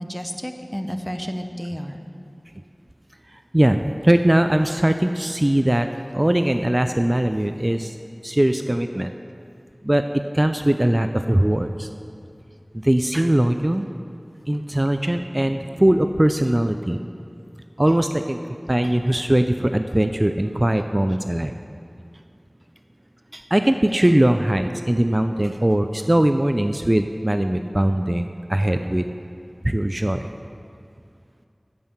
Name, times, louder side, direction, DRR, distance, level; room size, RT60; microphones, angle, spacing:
voice 1, 0.0-2.0, equal, 10° left, 6 dB, 0.7 m, -31 dB
voice 2, 3.3-5.9 6.1-8.0 8.2-9.1 9.8-10.0 10.3-11.9 12.8-13.9 14.5-17.0 17.8-18.4 18.7-21.5 23.3-29.1 29.6-30.3, right 1 dB, 30° right, 7 dB, 0.3 m, -20 dB
9.6 x 5.6 x 7.2 m, 2.5 s
wide cardioid pair, 45°, 0 cm